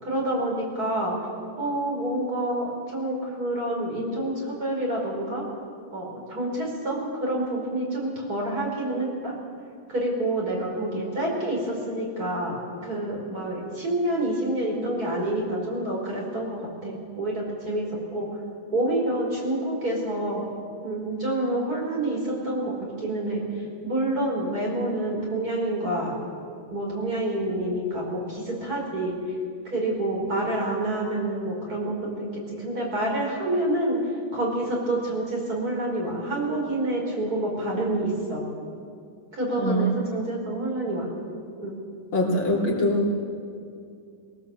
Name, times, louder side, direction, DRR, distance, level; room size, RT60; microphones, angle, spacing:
voice 1, 0.0-1.1 1.6-5.5 5.9-9.4 9.9-18.3 18.7-20.4 20.8-26.2 26.7-29.1 29.7-34.0 34.3-38.4 39.3-41.1 41.6-41.7, right 1 dB, 45° right, -2 dB, 5.2 m, -28 dB
voice 2, 39.6-39.9 42.1-43.2, equal, 70° left, -3 dB, 4.0 m, -23 dB
21.0 x 18.5 x 7.6 m, 2.4 s
omnidirectional pair, 2.3 m